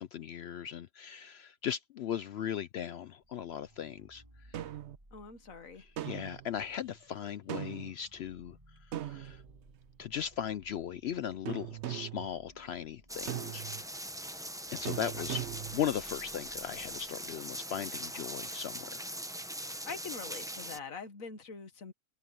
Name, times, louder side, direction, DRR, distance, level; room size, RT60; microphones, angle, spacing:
voice 1, 0.0-4.7 5.8-9.4 10.0-13.6 14.7-15.4 15.7-19.0, left 9 dB, 65° left, 0.7 m, -38 dB
sound 1, 3.2-18.6, right 1 dB, 25° right, 8.2 m, -61 dB
sound 2, 4.5-5.0 6.0-6.5 7.5-7.9 8.9-9.8 11.4-12.3 13.3-13.8 14.8-15.8, right 12 dB, 65° right, 0.9 m, -39 dB
voice 2, 5.1-5.9 19.9-21.9, left 5 dB, 90° left, 2.0 m, -44 dB
sound 3, 13.1-20.8, right 1 dB, 5° right, 0.6 m, -41 dB
open air
omnidirectional pair, 1.4 m